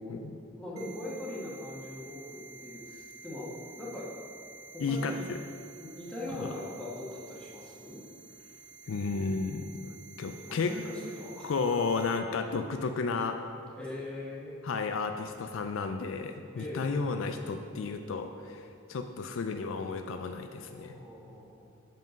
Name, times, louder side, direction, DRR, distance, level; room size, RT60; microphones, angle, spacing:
voice 1, 0.5-3.5 3.8-4.1 4.7-5.2 5.8-8.0 10.5-11.5 13.8-14.5 16.5-17.0 20.7-21.7, left 1 dB, 5° left, -7 dB, 1.5 m, -41 dB
sound 1, 0.8-12.2, right 4 dB, 80° right, 0.9 m, -51 dB
voice 2, 4.8-5.4 6.4-6.5 8.9-10.7 11.4-13.4 14.6-21.0, left 4 dB, 70° left, 6 dB, 0.4 m, -33 dB
7.5 x 5.4 x 5.2 m, 2.5 s
head